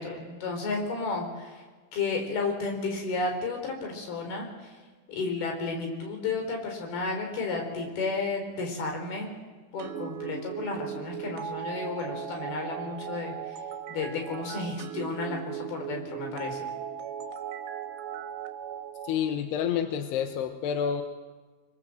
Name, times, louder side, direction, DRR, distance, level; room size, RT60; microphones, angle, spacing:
voice 1, 0.0-1.6 1.9-4.5 5.1-9.4 9.7-13.3 13.9-16.7, left 3 dB, 55° left, 3 dB, 5.9 m, -32 dB
sound 1, 9.8-19.2, right 9 dB, 75° right, 3.7 m, -38 dB
voice 2, 19.0-21.0, left 8 dB, 75° left, 6 dB, 2.7 m, -28 dB
26.0 x 22.0 x 7.7 m, 1.3 s
omnidirectional pair, 5.6 m